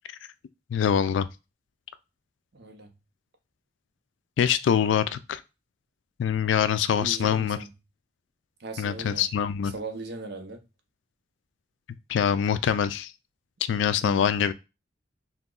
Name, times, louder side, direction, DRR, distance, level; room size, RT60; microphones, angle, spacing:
voice 1, 0.7-1.3 4.4-5.4 6.2-7.6 8.8-9.7 12.1-13.1 13.7-14.5, left 8 dB, 85° left, 0.3 m, -24 dB
voice 2, 2.5-2.9 6.9-7.7 8.6-9.3 9.6-10.6 13.8-14.3, right 3 dB, 65° right, 0.7 m, -38 dB
2.9 x 2.2 x 3.7 m
head